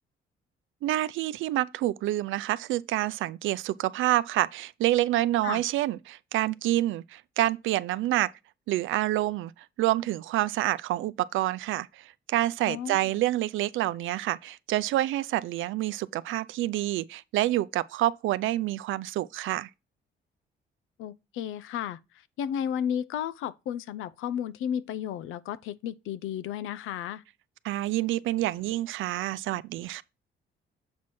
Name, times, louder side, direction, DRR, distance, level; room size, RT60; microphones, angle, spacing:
voice 1, 0.8-8.3 8.7-9.5 9.8-19.7 27.6-30.0, right 15 dB, 80° right, 0.5 m, -27 dB
voice 2, 12.7-13.1 21.0-22.0 22.4-27.2, left 9 dB, 90° left, 0.5 m, -33 dB
7.2 x 4.8 x 4.2 m
cardioid pair, 90°, 20 cm